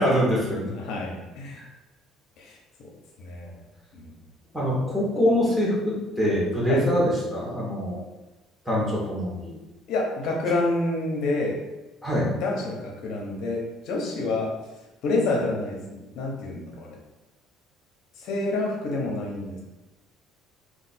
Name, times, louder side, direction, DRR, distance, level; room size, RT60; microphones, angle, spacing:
voice 1, 0.0-0.7 1.6-1.7 4.5-8.0 8.7-9.6 12.0-12.3, equal, 5° right, -6 dB, 1.1 m, -24 dB
voice 2, 0.7-1.6 2.4-2.9 3.2-3.6 3.9-4.1 6.7-6.8 9.9-11.6 12.4-14.5 15.0-17.0 18.2-19.6, left 2 dB, 65° left, 0 dB, 0.8 m, -28 dB
2.5 x 2.4 x 4.1 m, 1.1 s
cardioid pair, 125°, 0 cm